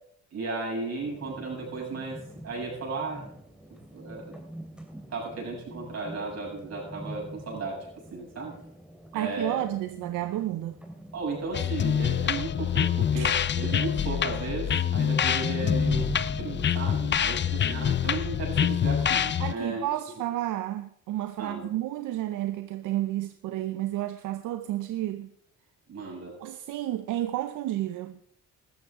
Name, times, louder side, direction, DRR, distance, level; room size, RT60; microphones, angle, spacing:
voice 1, 0.3-3.3 3.9-4.3 5.1-8.5 9.1-9.7 11.1-16.1 16.4-19.9 21.4-21.7 25.9-26.3, right 3 dB, 55° right, 7.3 m, -35 dB
sound 1, 1.0-17.8, right 1 dB, 5° right, 3.0 m, -43 dB
voice 2, 9.1-10.8 13.1-13.3 19.4-25.3 26.4-28.2, right 14 dB, 85° right, 0.7 m, -31 dB
sound 2, 11.5-19.5, left 8 dB, 40° left, 0.6 m, -26 dB
14.5 x 13.0 x 3.6 m
cardioid pair, 90°, 30 cm